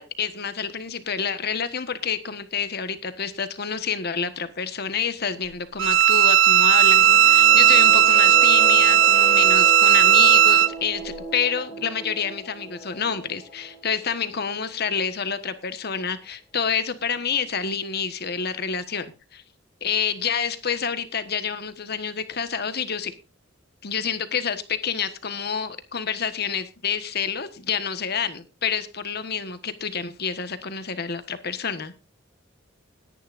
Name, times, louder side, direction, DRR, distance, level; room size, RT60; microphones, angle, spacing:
voice 1, 0.0-19.1 19.3-19.4 19.8-23.1 23.8-31.9, left 6 dB, 55° left, 1.4 m, -28 dB
Bowed string instrument, 5.8-10.7, right 10 dB, 70° right, 0.5 m, -15 dB
sound 1, 6.7-15.3, equal, 20° left, 4.4 m, -37 dB
20.0 x 10.5 x 2.6 m
head